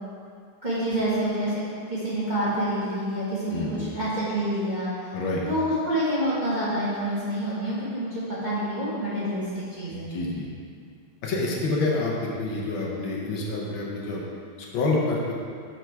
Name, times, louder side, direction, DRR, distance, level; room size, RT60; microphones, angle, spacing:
voice 1, 0.6-1.5 1.9-5.2 5.5-10.2, right 1 dB, 30° right, -10 dB, 1.0 m, -27 dB
voice 2, 3.5-3.9 5.1-5.4 9.9-10.5 11.2-14.2 14.7-15.3, left 2 dB, 70° left, -3 dB, 1.6 m, -27 dB
6.8 x 4.8 x 4.5 m, 2.3 s
omnidirectional pair, 2.4 m